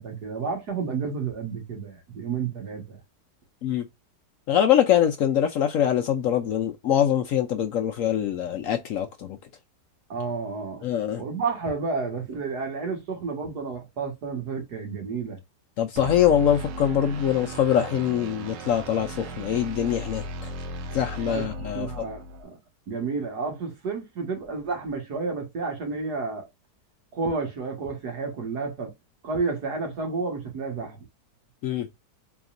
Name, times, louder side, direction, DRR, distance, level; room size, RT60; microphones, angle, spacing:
voice 1, 0.0-3.0 10.1-10.8 11.2-15.4 21.3-22.6 22.9-26.5 27.1-28.9 29.2-31.1, right 4 dB, 65° right, 2.0 m, -31 dB
voice 2, 4.5-9.4 10.8-11.2 15.8-20.5 20.9-22.1 31.6-31.9, left 10 dB, 70° left, 0.8 m, -23 dB
sound 1, 16.0-22.4, right 1 dB, 85° right, 1.5 m, -36 dB
4.0 x 3.5 x 2.5 m
omnidirectional pair, 1.8 m